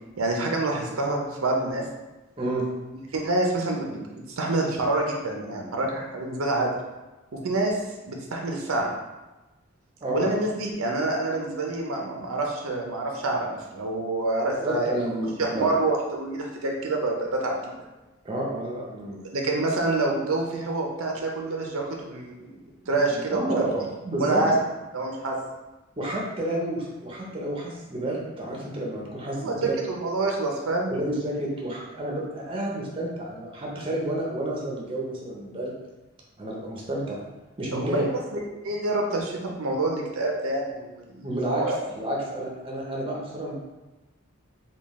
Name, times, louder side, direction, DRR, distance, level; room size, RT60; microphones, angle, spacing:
voice 1, 0.2-1.8 3.1-4.1 4.4-6.7 7.3-7.8 8.0-8.9 10.1-15.0 15.4-17.6 19.3-22.5 22.9-23.5 24.2-24.6 24.9-25.4 29.4-30.9 37.7-38.4 38.6-41.8, right 2 dB, 85° right, 1 dB, 0.6 m, -27 dB
voice 2, 14.6-15.7 18.2-19.2 22.8-24.4 26.0-29.7 30.9-35.7 36.4-37.2 37.6-38.0 41.2-41.6 41.9-43.6, right 1 dB, 25° right, -2 dB, 0.6 m, -30 dB
3.8 x 2.3 x 3.5 m, 1.1 s
head